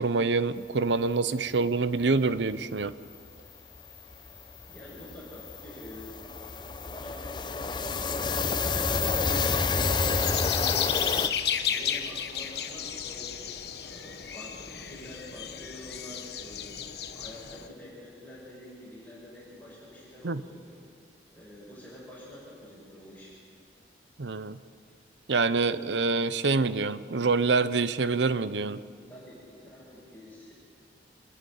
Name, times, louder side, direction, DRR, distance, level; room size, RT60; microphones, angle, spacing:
voice 1, 0.0-2.9 20.2-20.4 24.2-24.6 25.3-28.8, right 4 dB, 85° right, 15 dB, 0.7 m, -26 dB
sound 1, 2.9-3.0 3.3-3.5 3.7-11.3, left 4 dB, 25° left, 0.6 m, -29 dB
voice 2, 4.7-6.2 6.8-9.2 10.3-13.3 13.8-16.8 17.1-20.8 21.3-23.4 29.1-30.5, equal, 10° left, -9 dB, 6.3 m, -47 dB
sound 2, 9.3-17.7, left 9 dB, 65° left, 1.1 m, -33 dB
27.5 x 11.0 x 9.3 m, 2.2 s
head